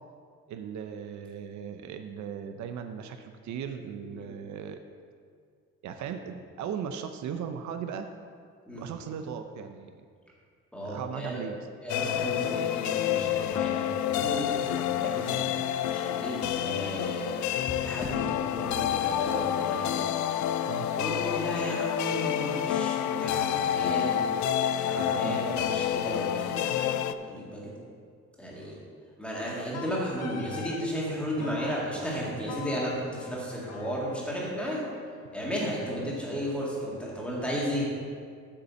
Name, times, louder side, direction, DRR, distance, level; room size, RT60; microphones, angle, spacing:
voice 1, 0.5-4.8 5.8-8.1 8.7-9.9 10.8-11.7 20.7-20.9 25.2-25.5 31.4-31.6, right 7 dB, 70° right, 7 dB, 0.6 m, -37 dB
sound 1, 8.7-8.9 10.4-10.6 11.2-11.3 13.5-14.3 14.9-15.1 17.5-21.2 25.1-25.3, left 2 dB, 30° left, 0.9 m, -46 dB
voice 2, 10.7-11.4 11.8-15.5 15.8-17.5 17.8-20.1 21.0-24.2 24.8-27.0 27.3-27.7 28.4-28.8 29.2-34.8 35.3-37.9, equal, 5° left, -5 dB, 2.0 m, -34 dB
sound 2, 11.9-27.1, left 10 dB, 70° left, 0.4 m, -28 dB
Wind instrument woodwind instrument, 29.7-30.8 31.4-31.9 32.5-35.5, left 6 dB, 55° left, 1.1 m, -43 dB
8.5 x 5.4 x 6.8 m, 2.1 s
cardioid pair, 160°, 30 cm